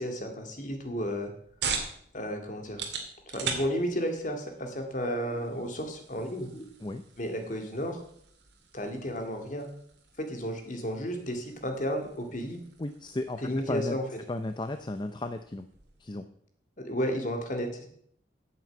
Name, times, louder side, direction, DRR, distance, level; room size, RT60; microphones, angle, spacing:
voice 1, 0.0-1.3 2.1-2.8 3.3-6.7 7.2-8.0 8.7-9.7 10.2-12.6 13.4-14.0 16.8-17.8, equal, 45° left, 4 dB, 2.1 m, -32 dB
sound 1, 1.0-16.1, right 5 dB, 70° right, 2.2 m, -42 dB
voice 2, 12.8-14.0 14.3-15.7 16.0-16.3, left 2 dB, 25° left, 8 dB, 0.5 m, -34 dB
9.3 x 7.6 x 8.0 m, 0.66 s
head